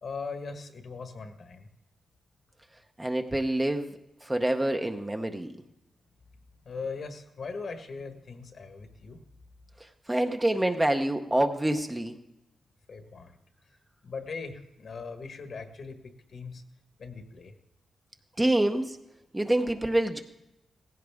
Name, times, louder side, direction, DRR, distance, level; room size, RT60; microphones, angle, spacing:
voice 1, 0.0-1.7 6.6-9.2 12.9-13.4 14.0-16.6 17.0-17.5, left 4 dB, 45° left, 6 dB, 1.3 m, -40 dB
voice 2, 3.0-3.9 4.2-5.6 10.1-12.2 18.4-19.0 19.3-20.2, right 1 dB, 10° right, 5 dB, 0.7 m, -26 dB
17.5 x 15.5 x 3.5 m, 0.88 s
wide cardioid pair, 165°, 0 cm